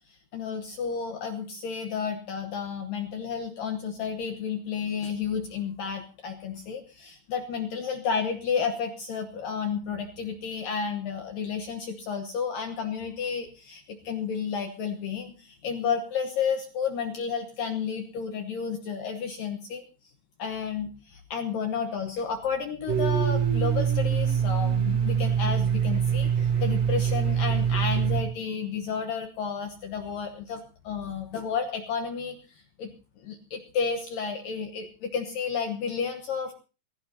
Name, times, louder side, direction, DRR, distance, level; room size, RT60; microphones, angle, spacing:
voice 1, 0.1-19.8 20.4-32.9 33.2-36.5, left 6 dB, 75° left, 5 dB, 2.0 m, -32 dB
Domestic sounds home sounds, 22.9-28.2, right 8 dB, 50° right, 3.4 m, -24 dB
24.0 x 15.5 x 2.8 m, 0.33 s
omnidirectional pair, 5.7 m